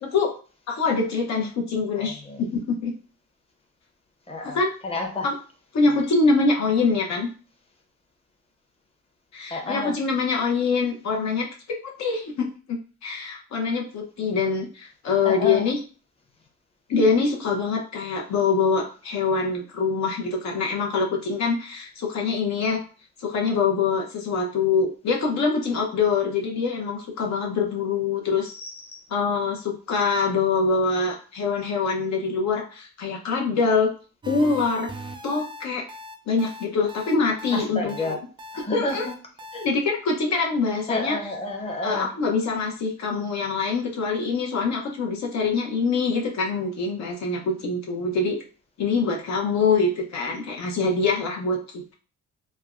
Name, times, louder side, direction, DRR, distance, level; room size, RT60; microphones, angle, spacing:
voice 1, 0.0-0.3 0.7-2.9 4.4-4.7 5.2-5.3 5.7-7.3 9.3-11.5 11.8-15.8 16.9-22.8 23.2-28.5 29.1-33.9 34.2-34.9 35.2-35.9 36.3-38.2 38.7-39.1 39.5-41.2 41.8-48.4 48.8-51.9, left 4 dB, 65° left, 0 dB, 0.7 m, -24 dB
voice 2, 2.0-2.4 4.3-4.6 4.8-5.3 9.5-10.0 15.2-15.7 28.4-29.0 37.5-38.2 38.5-39.1 39.5-39.6 40.9-42.1, left 2 dB, 20° left, 2 dB, 0.7 m, -30 dB
sound 1, 34.2-39.7, equal, 15° right, 0.3 m, -39 dB
3.2 x 2.1 x 2.4 m, 0.38 s
cardioid pair, 90°, 30 cm